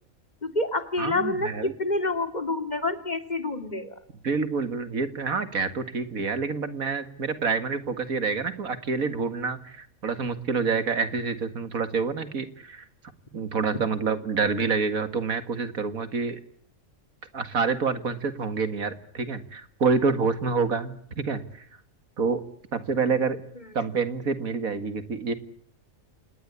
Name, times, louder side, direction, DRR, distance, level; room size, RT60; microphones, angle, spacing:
voice 1, 0.4-1.5 1.8-3.9, left 2 dB, 30° left, 9 dB, 2.6 m, -27 dB
voice 2, 1.0-1.7 4.2-12.8 13.3-16.4 17.3-21.6 22.2-22.4 22.7-23.4 23.7-25.3, right 5 dB, 80° right, 11 dB, 2.4 m, -27 dB
28.0 x 20.0 x 8.3 m, 0.64 s
omnidirectional pair, 1.5 m